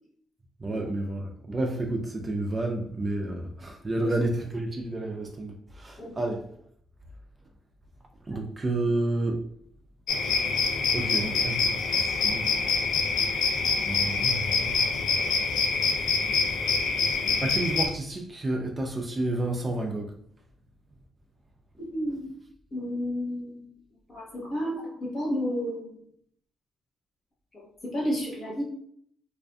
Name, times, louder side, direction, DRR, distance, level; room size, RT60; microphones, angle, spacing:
voice 1, 0.6-6.5 8.2-9.4 10.9-12.5 13.2-13.6 13.9-14.9 17.3-20.1, right 2 dB, 25° right, 0.4 m, -30 dB
sound 1, 10.1-17.9, left 4 dB, 75° left, 0.4 m, -25 dB
voice 2, 21.8-22.3 22.7-23.7 24.1-26.0 27.5-28.6, equal, 45° left, 1.0 m, -32 dB
2.4 x 2.4 x 2.3 m
cardioid pair, 90°, 0 cm